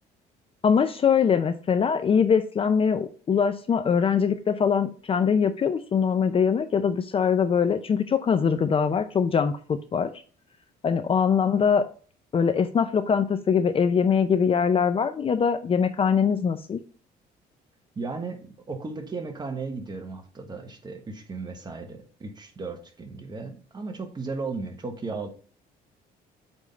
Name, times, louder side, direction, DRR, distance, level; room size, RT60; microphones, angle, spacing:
voice 1, 0.6-10.1 10.8-11.8 12.3-16.8, left 6 dB, 35° left, 10 dB, 0.6 m, -22 dB
voice 2, 17.9-25.3, right 4 dB, 25° right, 5 dB, 1.3 m, -35 dB
8.3 x 3.6 x 4.0 m, 0.41 s
cardioid pair, 110°, 17 cm